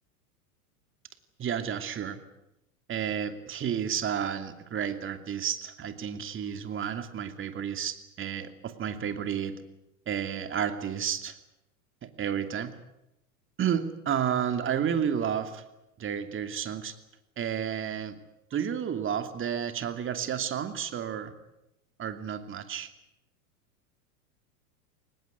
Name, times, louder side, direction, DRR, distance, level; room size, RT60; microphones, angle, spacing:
voice 1, 1.4-2.2 2.9-9.6 10.1-11.3 12.0-12.7 13.6-15.6 16.0-16.9 17.4-18.2 18.5-21.3 22.0-22.9, right 8 dB, 25° right, 9 dB, 2.7 m, -31 dB
23.5 x 20.0 x 9.7 m, 0.88 s
hypercardioid pair, 115°, 44 cm